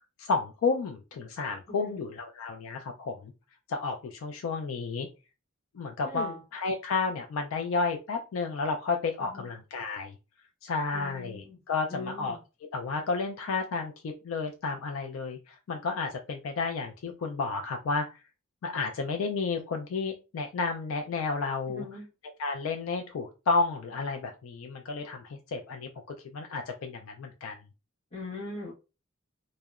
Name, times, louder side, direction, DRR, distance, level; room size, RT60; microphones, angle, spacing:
voice 1, 0.2-3.3 3.7-5.1 5.8-10.1 10.6-12.4 12.7-15.4 15.7-18.1 18.6-21.8 22.4-25.9 26.3-27.5, left 4 dB, 80° left, 5 dB, 0.3 m, -31 dB
voice 2, 1.7-2.0 6.0-6.4 9.2-9.5 10.9-11.6 11.9-12.4 21.7-22.1 28.1-28.7, left 2 dB, 30° left, -4 dB, 1.1 m, -40 dB
2.7 x 2.0 x 2.3 m, 0.30 s
head